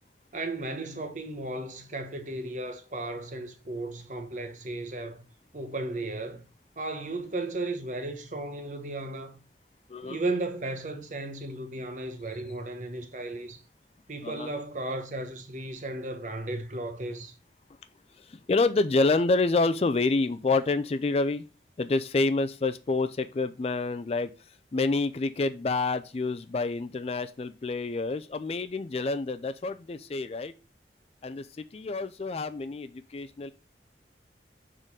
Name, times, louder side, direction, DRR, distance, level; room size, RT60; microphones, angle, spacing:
voice 1, 0.3-5.2 5.5-6.4 6.8-9.4 10.0-13.6 14.1-17.3, right 2 dB, 45° right, 0.9 m, -35 dB
voice 2, 9.9-10.2 14.2-14.5 18.1-21.4 21.8-30.5 31.2-33.5, left 3 dB, 35° left, 0.3 m, -28 dB
6.7 x 3.8 x 4.7 m
head